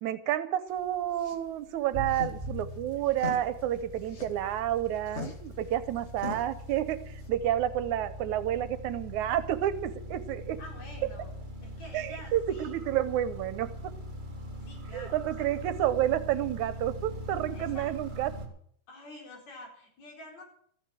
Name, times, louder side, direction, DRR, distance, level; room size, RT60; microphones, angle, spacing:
voice 1, 0.0-10.6 11.9-13.7 14.9-18.3, right 12 dB, 80° right, 13 dB, 2.3 m, -30 dB
sound 1, 0.7-7.3, left 4 dB, 25° left, 1.9 m, -43 dB
sound 2, 1.9-18.5, equal, 20° right, 1.9 m, -41 dB
voice 2, 10.6-11.3 11.6-12.8 14.6-15.5 17.5-17.9 18.9-20.4, left 1 dB, 65° left, 0 dB, 5.7 m, -48 dB
14.5 x 11.0 x 7.7 m, 0.65 s
omnidirectional pair, 3.4 m